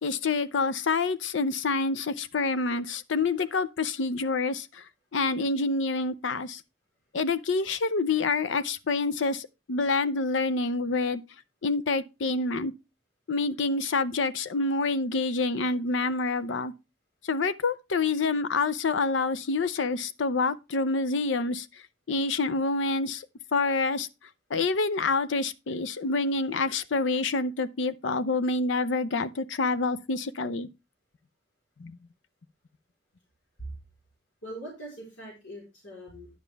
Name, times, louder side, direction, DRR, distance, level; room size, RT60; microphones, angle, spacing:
voice 1, 0.0-4.8 5.1-6.6 7.1-11.2 11.6-12.7 13.3-16.7 17.2-21.7 22.1-23.2 23.5-24.1 24.5-30.7 31.8-32.0, left 3 dB, 75° left, 0.6 m, -27 dB
voice 2, 34.4-36.3, right 1 dB, 90° left, 3.8 m, -41 dB
10.0 x 7.1 x 3.4 m
head